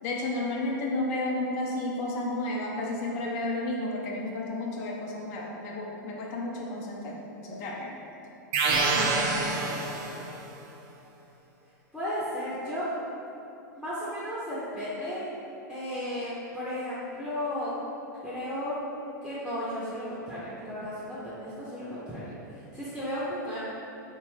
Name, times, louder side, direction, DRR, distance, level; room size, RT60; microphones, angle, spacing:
voice 1, 0.0-8.0 8.9-9.8, left 2 dB, 55° left, -2 dB, 0.6 m, -32 dB
sound 1, 8.5-10.4, right 3 dB, 50° right, 0.4 m, -26 dB
voice 2, 11.9-12.9 13.7-15.3 15.7-17.7 18.2-18.8 19.2-23.6, left 1 dB, ahead, -10 dB, 0.6 m, -34 dB
2.9 x 2.2 x 3.0 m, 2.8 s
hypercardioid pair, 110°, 10 cm